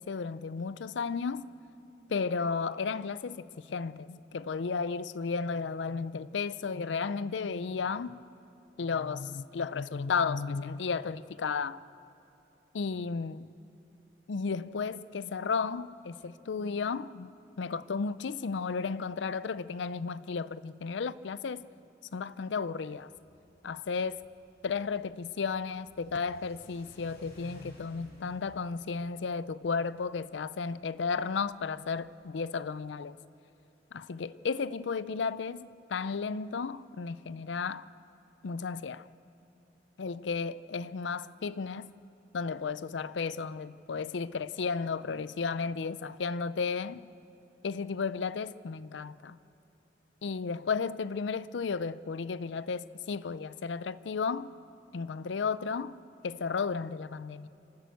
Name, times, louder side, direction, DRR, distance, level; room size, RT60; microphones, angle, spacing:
voice 1, 0.0-1.5 2.1-8.2 8.8-11.8 12.7-13.5 14.3-17.3 17.6-21.6 22.1-23.1 23.6-24.2 24.6-33.2 33.9-37.9 38.4-39.0 40.0-41.9 42.3-47.0 47.6-49.4 50.2-54.5 54.9-55.9 56.2-57.5, left 5 dB, 90° left, 0.5 m, -33 dB
Car / Accelerating revving vroom, 22.9-32.3, left 1 dB, 55° left, 6.8 m, -56 dB
26.5 x 12.5 x 8.2 m
head